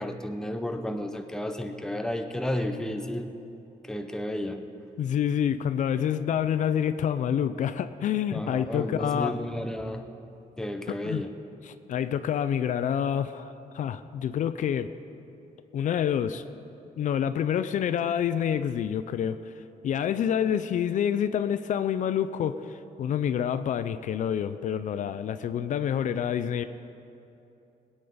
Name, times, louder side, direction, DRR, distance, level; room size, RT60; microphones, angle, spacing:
voice 1, 0.0-3.3 3.8-4.6 8.3-10.1 10.6-11.3, left 1 dB, 5° left, 6 dB, 0.6 m, -32 dB
voice 2, 5.0-9.3 10.9-11.2 11.6-14.9 15.7-16.4 17.0-19.5 19.8-26.6, left 9 dB, 60° left, 12 dB, 0.4 m, -27 dB
21.0 x 9.2 x 5.0 m, 2.8 s
wide cardioid pair, 175°, 15 cm